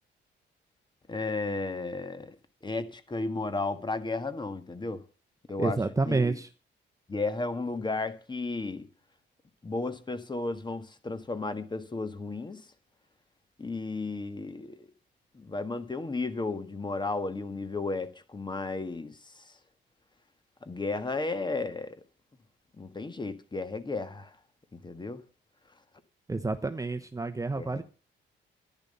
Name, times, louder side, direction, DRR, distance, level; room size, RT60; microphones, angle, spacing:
voice 1, 1.1-2.4 2.6-5.0 5.5-5.8 6.1-6.4 7.1-8.9 9.6-12.6 13.6-14.9 15.4-19.1 20.6-22.0 22.8-24.3 24.8-25.2 27.6-27.8, left 3 dB, 20° left, 1.7 m, -33 dB
voice 2, 5.6-6.5 26.3-27.8, right 3 dB, 15° right, 1.0 m, -29 dB
11.0 x 10.5 x 5.6 m
cardioid pair, 90°, 20 cm